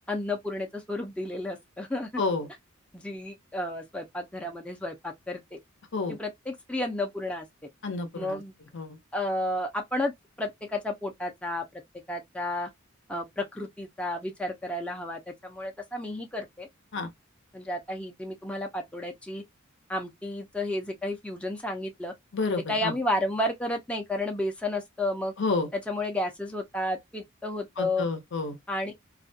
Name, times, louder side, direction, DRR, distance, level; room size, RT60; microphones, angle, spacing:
voice 1, 0.1-2.1 2.9-5.6 6.1-7.5 8.1-8.5 9.1-10.1 10.4-11.8 12.1-12.7 13.1-16.7 17.5-19.4 19.9-22.1 22.7-25.3 25.7-28.1 28.7-28.9, left 1 dB, 5° left, 0.5 m, -32 dB
voice 2, 2.2-2.5 5.9-6.2 7.8-8.4 8.7-9.0 16.9-17.1 22.3-22.9 25.4-25.7 27.8-28.6, left 3 dB, 60° left, 0.6 m, -29 dB
2.3 x 2.2 x 2.6 m
head